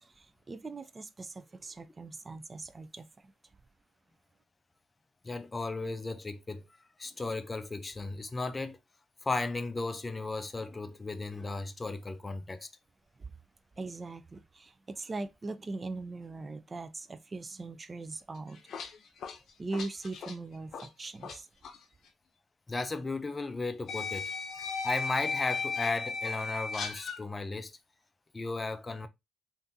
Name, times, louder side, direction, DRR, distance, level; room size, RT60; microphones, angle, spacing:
voice 1, 0.0-3.3 13.2-13.3 13.8-18.6 19.6-21.5, right 3 dB, 30° right, 0.4 m, -40 dB
voice 2, 5.2-6.6 7.0-8.8 9.2-12.7 22.7-24.3 24.8-27.8 28.3-29.1, left 3 dB, 25° left, 0.5 m, -35 dB
sound 1, 18.4-21.4 21.6-21.8 22.9-23.0 23.9-27.2, left 4 dB, 65° left, 0.6 m, -36 dB
3.5 x 2.6 x 2.7 m
cardioid pair, 90°, 0 cm